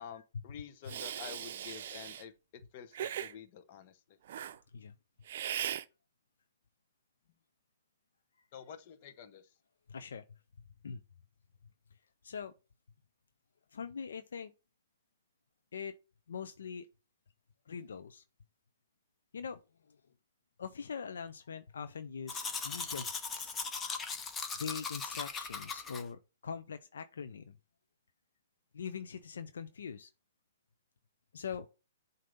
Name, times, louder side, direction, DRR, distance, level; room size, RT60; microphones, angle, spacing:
voice 1, 0.0-2.3 2.7-4.2 8.5-9.5, left 8 dB, 45° left, 0.9 m, -49 dB
Hiss, 0.9-2.2 2.9-3.3 4.3-4.6 5.3-5.8, right 10 dB, 60° right, 0.5 m, -38 dB
voice 2, 9.9-10.4 10.8-11.0 12.2-12.5 13.7-14.5 15.7-15.9 16.3-16.9 17.7-18.2 19.3-19.6 19.9-20.0 20.6-23.6 24.6-27.6 28.7-30.1 31.3-31.7, left 6 dB, 75° left, 0.5 m, -42 dB
Domestic sounds home sounds, 22.3-26.0, left 5 dB, 15° left, 0.8 m, -39 dB
7.5 x 2.7 x 5.1 m
hypercardioid pair, 130°, 0 cm